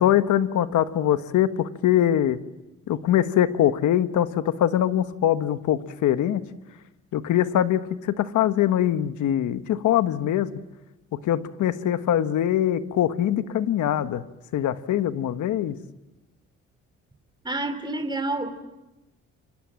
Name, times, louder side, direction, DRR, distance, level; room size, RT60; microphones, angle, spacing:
voice 1, 0.0-2.4 2.9-6.5 7.1-10.5 11.1-14.2 14.5-15.8, left 11 dB, 75° left, 1.4 m, -23 dB
voice 2, 17.4-18.6, right 2 dB, 15° right, 3.3 m, -28 dB
29.5 x 25.0 x 7.6 m
cardioid pair, 90°, 30 cm